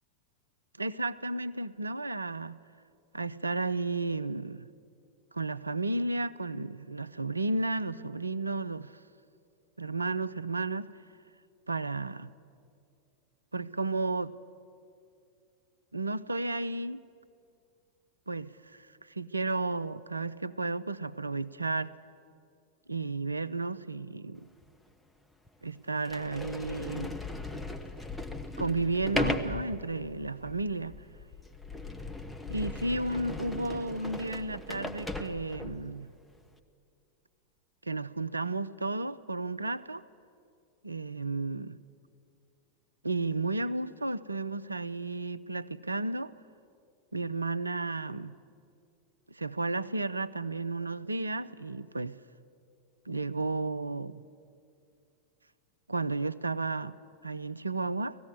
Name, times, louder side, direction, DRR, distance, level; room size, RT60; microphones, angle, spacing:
voice 1, 0.8-2.6 3.1-4.7 5.3-9.0 9.8-10.9 11.7-12.3 13.5-14.3 15.9-17.0 18.3-21.9 22.9-24.5 25.6-27.2 28.6-30.9 32.5-36.1 37.8-40.0 40.8-41.8 43.0-46.3 47.1-48.4 49.3-52.2 53.1-54.2 55.9-57.0 57.2-58.2, right 3 dB, 80° right, 16 dB, 0.5 m, -33 dB
Sliding door, 24.6-24.7 25.5-25.6 26.0-35.9, left 2 dB, 5° left, 1.1 m, -37 dB
18.5 x 15.0 x 9.6 m, 2.4 s
figure-of-eight pair, 90°, 0 cm